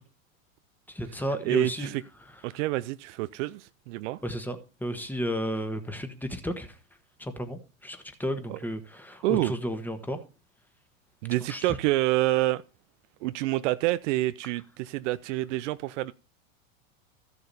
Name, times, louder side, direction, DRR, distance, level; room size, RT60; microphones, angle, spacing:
voice 1, 0.9-1.9 4.2-6.8 7.2-10.2 11.5-11.8, equal, 5° left, 1.4 m, -33 dB
voice 2, 1.5-2.0 2.4-4.2 8.5-8.6 9.2-9.6 11.2-12.6 13.2-16.1, right 17 dB, 65° right, 0.6 m, -27 dB
13.5 x 6.7 x 4.2 m
hypercardioid pair, 110°, 40 cm